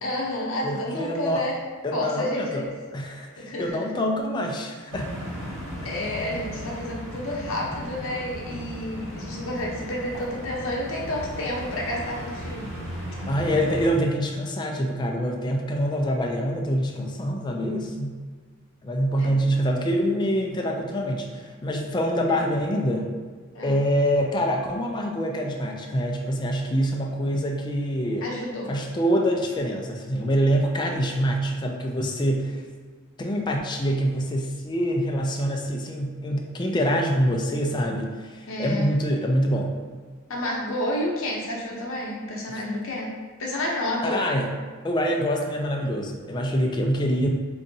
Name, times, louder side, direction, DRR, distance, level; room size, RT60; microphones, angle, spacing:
voice 1, 0.0-1.6 1.9-2.7 3.4-3.8 5.8-12.7 19.2-19.3 22.3-22.4 23.5-23.8 28.2-28.7 38.5-38.9 40.3-43.1 43.4-44.2, left 1 dB, 65° left, -2 dB, 0.8 m, -30 dB
voice 2, 0.6-1.4 1.8-2.6 2.9-5.1 13.3-18.2 18.8-23.1 23.6-28.3 28.7-32.6 33.2-39.7 42.5-42.6 44.0-44.5 44.8-47.3, equal, 20° left, 1 dB, 0.3 m, -25 dB
sound 1, 4.9-13.9, equal, 65° right, 1.2 m, -36 dB
4.7 x 2.6 x 2.7 m, 1.5 s
head